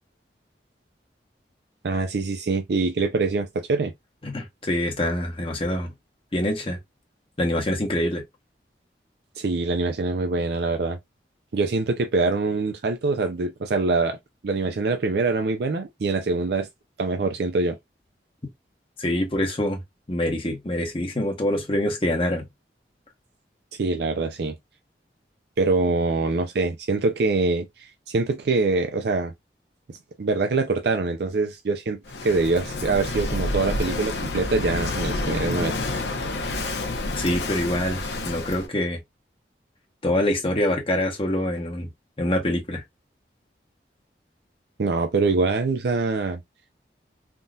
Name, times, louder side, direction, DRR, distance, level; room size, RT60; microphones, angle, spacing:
voice 1, 1.8-3.9 9.4-11.0 11.5-14.2 14.4-16.7 17.0-17.8 23.8-24.5 25.6-29.3 29.9-35.7 44.8-46.4, right 3 dB, 65° right, 0.4 m, -24 dB
voice 2, 4.2-5.9 6.3-6.8 7.4-8.2 19.0-19.8 20.1-22.5 37.1-39.0 40.0-41.9 42.2-42.8, left 1 dB, 30° left, 1.0 m, -25 dB
Walk footsteps / Wind / Waves surf, 32.1-38.7, left 2 dB, 75° left, 0.8 m, -29 dB
3.6 x 2.7 x 2.3 m
head